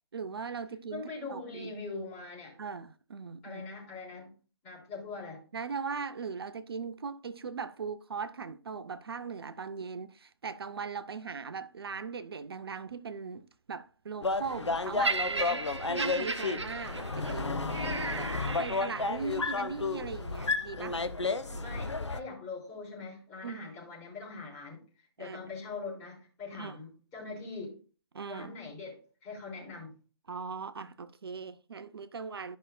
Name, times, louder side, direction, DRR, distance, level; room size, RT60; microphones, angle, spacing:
voice 1, 0.1-1.7 2.6-3.6 5.5-21.0 21.5-21.8 23.4-23.7 25.2-25.4 26.5-26.8 28.1-28.6 30.3-32.6, right 5 dB, 60° right, 0.5 m, -39 dB
voice 2, 0.9-2.6 3.4-4.3 4.6-5.4 21.6-27.8 28.3-29.9, left 4 dB, 20° left, 3.6 m, -42 dB
sound 1, 14.2-22.2, left 3 dB, 85° left, 0.7 m, -32 dB
Laughter, 15.0-19.3 20.1-20.3, right 3 dB, 75° right, 1.1 m, -35 dB
13.5 x 5.6 x 2.2 m
figure-of-eight pair, 140°, 15 cm